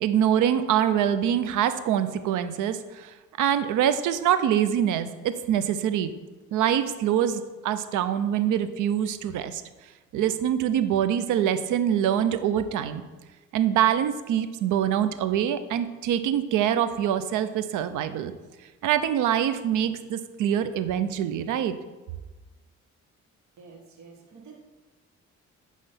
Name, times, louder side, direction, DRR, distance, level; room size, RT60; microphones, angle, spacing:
voice 1, 0.0-3.1 3.4-6.1 6.5-9.6 10.1-13.0 13.5-18.3 18.8-21.7, right 10 dB, 85° right, 11 dB, 0.6 m, -24 dB
voice 2, 23.6-24.6, right 5 dB, 65° right, 0 dB, 1.4 m, -48 dB
8.8 x 3.2 x 5.6 m, 1.2 s
cardioid pair, 90°, 30 cm